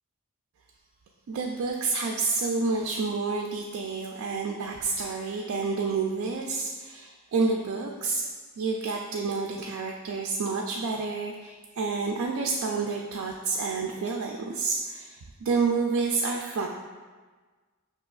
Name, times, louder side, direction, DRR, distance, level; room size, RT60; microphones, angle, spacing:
voice 1, 1.3-8.3 8.6-16.7, right 4 dB, 65° right, 0 dB, 0.3 m, -29 dB
5.9 x 2.8 x 2.3 m, 1.4 s
head